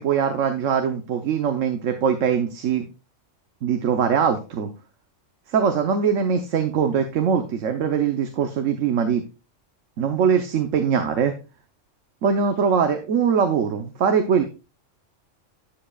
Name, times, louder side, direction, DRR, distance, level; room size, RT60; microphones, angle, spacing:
voice 1, 0.0-2.9 3.6-4.7 5.5-9.2 10.0-11.3 12.2-14.4, right 7 dB, 80° right, 6 dB, 1.2 m, -22 dB
11.5 x 7.7 x 2.3 m, 0.31 s
omnidirectional pair, 1.3 m